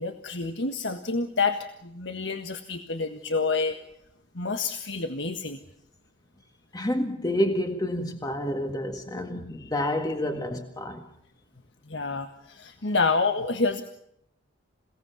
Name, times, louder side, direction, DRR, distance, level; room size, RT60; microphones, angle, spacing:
voice 1, 0.0-3.8 4.3-5.6 11.9-13.8, left 4 dB, 65° left, 1.6 m, -28 dB
voice 2, 6.7-11.1, left 1 dB, 20° left, 1.8 m, -29 dB
28.5 x 18.0 x 7.0 m
head